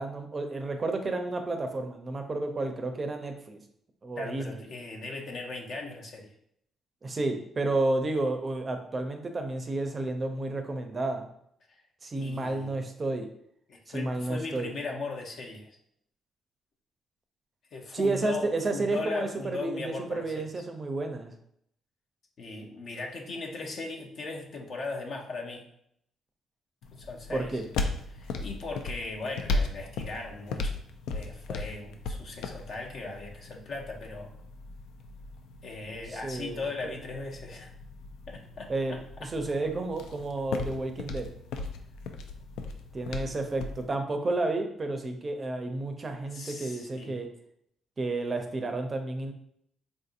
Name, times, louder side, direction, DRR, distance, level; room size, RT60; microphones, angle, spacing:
voice 1, 0.0-3.6 4.0-4.6 7.0-11.3 12.0-13.3 13.9-14.7 17.9-21.3 27.3-27.6 36.1-36.9 38.7-39.0 39.3-41.3 42.9-47.3 48.0-49.3, right 2 dB, 35° right, 5 dB, 0.5 m, -31 dB
voice 2, 4.2-6.3 11.7-11.8 12.1-12.9 13.7-15.8 17.7-20.5 22.4-25.6 26.9-27.6 28.1-30.7 31.1-34.3 35.6-37.7 38.3-39.0 46.2-47.2, left 3 dB, 60° left, 1 dB, 0.7 m, -38 dB
sound 1, 26.8-43.9, left 3 dB, 90° left, 0.3 m, -37 dB
3.7 x 2.6 x 2.5 m, 0.71 s
cardioid pair, 90°, 0 cm